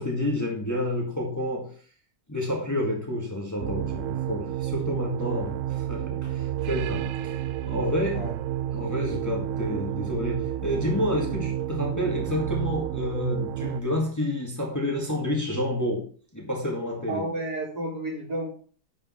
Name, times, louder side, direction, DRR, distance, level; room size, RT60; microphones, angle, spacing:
voice 1, 0.0-1.7 2.3-8.2 8.7-16.1 16.3-17.2, left 1 dB, 10° left, -1 dB, 2.0 m, -29 dB
sound 1, 3.6-13.8, right 12 dB, 90° right, 0.7 m, -30 dB
voice 2, 17.1-18.5, right 2 dB, 60° right, -2 dB, 3.9 m, -31 dB
10.0 x 5.5 x 5.7 m, 0.42 s
omnidirectional pair, 1.9 m